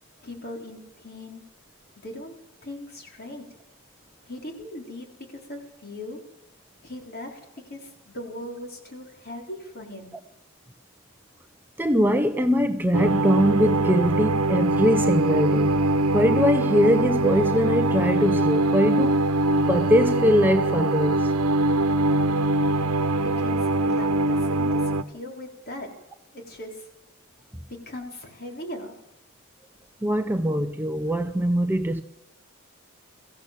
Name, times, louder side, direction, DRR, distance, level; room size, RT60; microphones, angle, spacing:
voice 1, 0.2-1.4 2.0-2.3 2.6-3.4 4.2-6.2 6.8-7.4 7.7-10.2 22.9-25.9 26.3-26.9 27.9-29.0, left 1 dB, 45° left, 4.2 m, -39 dB
voice 2, 11.8-15.8 16.1-19.2 19.7-21.3 30.0-32.0, equal, 10° right, 0.7 m, -22 dB
sound 1, 12.9-25.0, right 2 dB, 85° right, 1.1 m, -23 dB
23.0 x 15.0 x 7.5 m
head